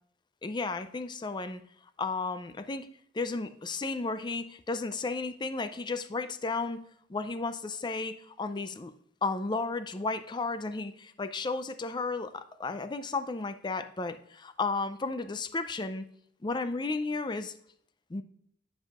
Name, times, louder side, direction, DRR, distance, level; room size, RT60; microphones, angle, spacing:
voice 1, 0.4-1.6 2.0-2.9 3.1-8.9 9.2-16.1 16.4-17.5 18.1-18.2, left 3 dB, 25° left, 10 dB, 0.4 m, -33 dB
9.9 x 5.5 x 2.4 m, 0.66 s
head